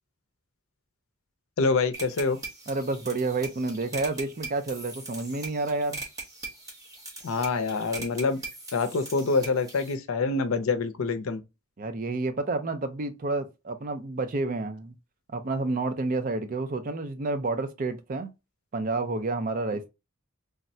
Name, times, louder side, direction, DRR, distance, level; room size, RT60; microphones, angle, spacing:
voice 1, 1.6-2.4 7.2-8.4 8.7-11.4, left 4 dB, 80° left, 0.5 m, -26 dB
sound 1, 1.9-9.9, right 2 dB, 15° right, 0.9 m, -41 dB
voice 2, 2.7-6.0 11.8-14.9 15.3-18.3 18.7-19.9, right 3 dB, 40° right, 0.5 m, -29 dB
3.5 x 2.1 x 2.6 m
head